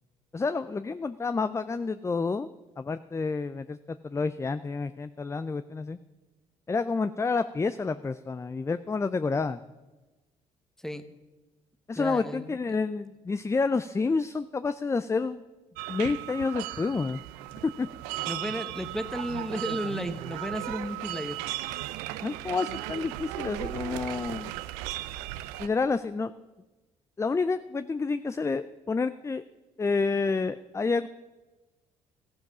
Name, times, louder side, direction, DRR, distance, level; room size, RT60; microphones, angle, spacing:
voice 1, 0.3-2.5 2.8-6.0 6.7-9.6 11.9-15.4 15.9-17.2 17.8-17.9 22.2-24.5 25.6-26.3 27.2-29.4 29.8-31.1, left 4 dB, 20° left, 13 dB, 0.4 m, -29 dB
voice 2, 11.9-12.6 18.3-21.4, equal, 5° left, 10 dB, 1.2 m, -34 dB
sound 1, 15.8-25.7, right 16 dB, 85° right, 0.5 m, -36 dB
14.0 x 10.5 x 6.1 m, 1.2 s
supercardioid pair, 60°, 15 cm